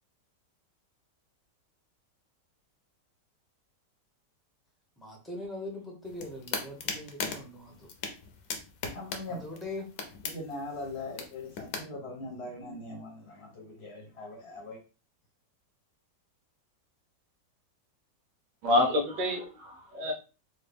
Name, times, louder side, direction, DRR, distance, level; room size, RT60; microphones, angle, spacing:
voice 1, 5.0-7.9 9.3-9.9, left 2 dB, ahead, 0.7 m, -41 dB
sound 1, 6.0-11.8, left 5 dB, 65° left, 1.2 m, -39 dB
voice 2, 8.9-9.4 10.2-14.8, left 2 dB, 45° left, 1.0 m, -41 dB
voice 3, 18.6-20.1, left 1 dB, 85° right, 1.5 m, -27 dB
4.1 x 2.6 x 3.4 m
omnidirectional pair, 1.9 m